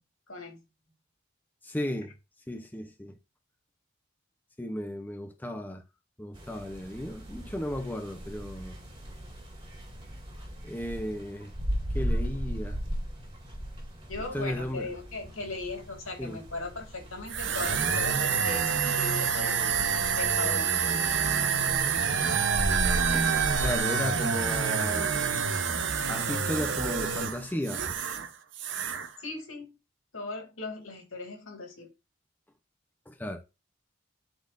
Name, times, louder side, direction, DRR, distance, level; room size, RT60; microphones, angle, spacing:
voice 1, 0.3-0.6 14.1-19.7 20.2-21.1 29.2-29.7 30.1-31.9, left 3 dB, 85° left, 2.5 m, -38 dB
voice 2, 1.6-2.1 2.5-3.1 4.6-5.8 6.2-8.8 10.6-11.5 11.9-12.8 14.3-14.9 16.2-16.4 23.1-23.3 23.6-25.1 26.1-27.8 33.1-33.4, left 1 dB, 10° left, 0.7 m, -34 dB
sound 1, 6.3-23.8, equal, 25° right, 2.1 m, -37 dB
sound 2, 17.3-28.3 28.5-29.1, right 6 dB, 60° right, 0.9 m, -27 dB
11.5 x 4.3 x 2.6 m
head